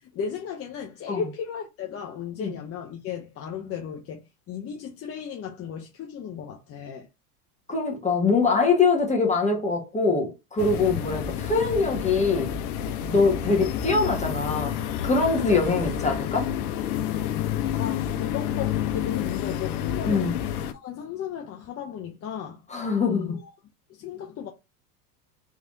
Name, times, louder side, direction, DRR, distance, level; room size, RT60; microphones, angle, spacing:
voice 1, 0.1-7.1 17.3-17.4 17.7-20.3 20.7-22.6 23.1-23.5 23.9-24.5, left 8 dB, 30° left, 0.7 m, -35 dB
voice 2, 7.7-12.5 13.1-14.7 15.0-16.5 20.0-20.4 22.7-23.4, left 4 dB, 15° left, 1.4 m, -23 dB
sound 1, 10.6-20.7, left 9 dB, 65° left, 0.8 m, -29 dB
3.4 x 3.2 x 2.6 m
hypercardioid pair, 90°, 47 cm